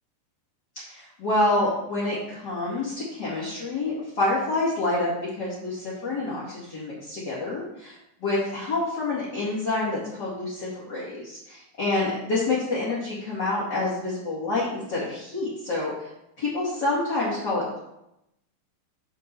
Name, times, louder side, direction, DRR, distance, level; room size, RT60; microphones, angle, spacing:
voice 1, 0.8-5.1 5.4-16.1 16.4-17.8, left 2 dB, 35° left, -9 dB, 2.0 m, -27 dB
9.0 x 3.8 x 6.8 m, 0.85 s
omnidirectional pair, 4.9 m